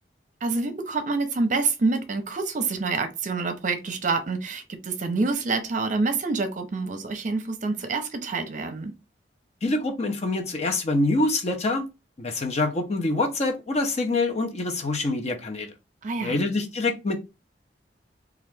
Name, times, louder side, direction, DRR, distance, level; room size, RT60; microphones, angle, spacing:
voice 1, 0.4-8.9 16.0-16.4, right 3 dB, 45° right, 0.6 m, -27 dB
voice 2, 9.6-11.9 12.2-15.7 16.2-17.2, left 2 dB, 40° left, 0.7 m, -25 dB
2.9 x 2.4 x 3.3 m
head